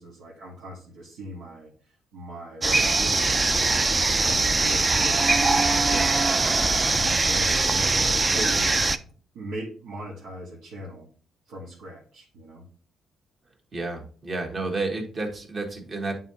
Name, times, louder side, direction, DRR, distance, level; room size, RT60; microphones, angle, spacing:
voice 1, 0.0-3.9 4.2-6.2 6.7-8.8 9.3-11.1 11.5-12.6, right 1 dB, 90° right, -5 dB, 1.4 m, -39 dB
sound 1, 2.6-9.0, right 3 dB, 25° right, 0.4 m, -22 dB
voice 2, 13.7-16.2, right 3 dB, 45° right, 2 dB, 1.6 m, -31 dB
8.8 x 3.8 x 2.8 m, 0.42 s
cardioid pair, 90°, 0 cm